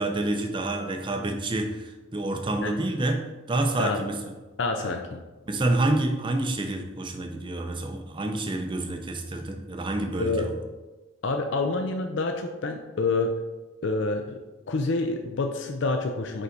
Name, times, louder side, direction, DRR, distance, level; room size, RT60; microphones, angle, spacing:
voice 1, 0.0-4.3 4.8-4.9 5.5-10.6, right 2 dB, 25° right, 4 dB, 0.6 m, -28 dB
voice 2, 4.6-5.2 10.2-10.5 11.2-13.3 13.8-14.4 14.7-16.4, left 3 dB, 65° left, 5 dB, 0.5 m, -27 dB
5.6 x 4.7 x 3.9 m, 1.2 s
head